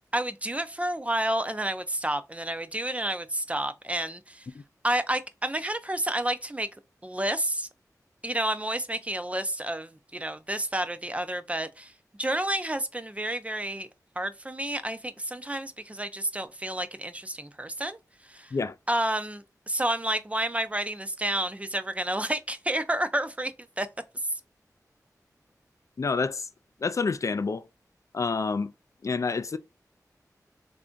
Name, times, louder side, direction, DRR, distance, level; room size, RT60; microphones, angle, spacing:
voice 1, 0.1-4.5 4.8-6.7 7.0-7.7 8.2-11.9 12.2-13.9 14.2-18.0 18.3-18.5 18.9-23.9, right 1 dB, 20° right, 0.4 m, -30 dB
voice 2, 26.0-26.5 26.8-27.6 28.1-28.7 29.0-29.6, left 4 dB, 55° left, 0.4 m, -28 dB
3.3 x 2.5 x 3.7 m
wide cardioid pair, 55°, 6 cm